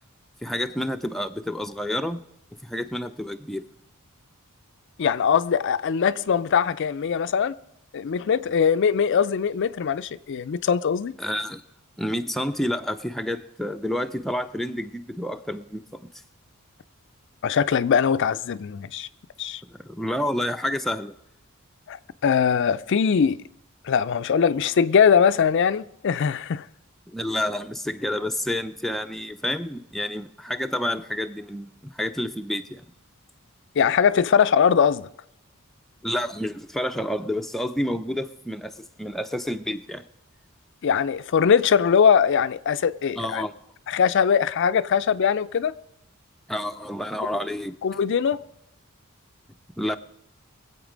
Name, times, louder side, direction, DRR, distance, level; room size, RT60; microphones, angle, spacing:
voice 1, 0.4-2.2 2.6-3.7 11.2-11.6 12.0-16.1 19.7-21.2 27.1-32.8 36.0-40.0 43.2-43.5 46.5-47.8 49.8-50.0, left 1 dB, ahead, 0.5 m, -29 dB
voice 2, 5.0-7.6 7.9-11.1 17.4-19.1 19.4-19.6 21.9-23.4 23.8-26.6 33.8-35.1 40.8-43.4 43.9-45.7 47.8-48.4, left 7 dB, 60° left, 0.4 m, -21 dB
22.0 x 8.0 x 5.1 m
head